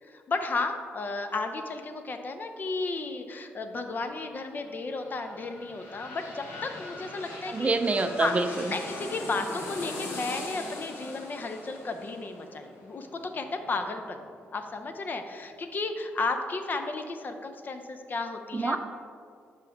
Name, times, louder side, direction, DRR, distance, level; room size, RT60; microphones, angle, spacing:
voice 1, 0.0-7.7 8.2-8.4 8.7-14.2 14.5-18.8, left 3 dB, 45° left, 6 dB, 0.5 m, -33 dB
sound 1, 4.6-14.3 14.7-14.8, left 2 dB, 80° left, 0.9 m, -41 dB
voice 2, 7.5-8.7 18.5-18.8, right 3 dB, 30° right, 8 dB, 0.4 m, -26 dB
5.5 x 5.1 x 3.4 m, 2.2 s
cardioid pair, 75°, 5 cm